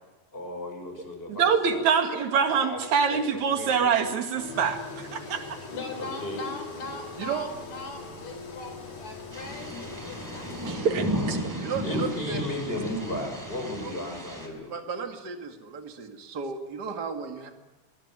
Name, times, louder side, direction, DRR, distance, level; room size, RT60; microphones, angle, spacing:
voice 1, 0.3-1.8 2.5-2.8 3.1-3.2 3.5-3.9 6.0-6.4 11.8-14.7, left 1 dB, 15° left, 3 dB, 6.5 m, -35 dB
voice 2, 1.3-5.6 10.7-11.7, right 6 dB, 70° right, 6 dB, 3.5 m, -25 dB
Engine, 4.4-10.7, left 4 dB, 80° left, 5.5 m, -41 dB
voice 3, 5.7-10.5, left 3 dB, 65° left, 6 dB, 5.3 m, -40 dB
sound 1, 9.3-14.5, right 1 dB, 5° right, 4.4 m, -34 dB
voice 4, 11.6-12.4 13.8-13.9 14.7-17.5, right 6 dB, 35° right, 5 dB, 2.4 m, -34 dB
23.0 x 21.5 x 9.1 m, 1.3 s
omnidirectional pair, 3.5 m